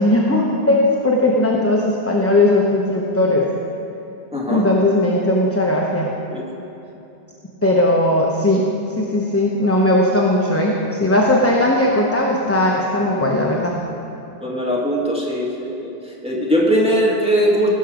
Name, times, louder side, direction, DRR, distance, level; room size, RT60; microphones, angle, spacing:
voice 1, 0.0-3.5 4.5-6.1 7.6-8.6 8.9-13.7, left 1 dB, 15° left, -2 dB, 0.8 m, -18 dB
voice 2, 4.3-4.7 6.3-6.4 14.4-15.9 16.2-17.7, equal, 5° right, -5 dB, 1.9 m, -19 dB
17.5 x 6.6 x 5.1 m, 2.9 s
omnidirectional pair, 1.1 m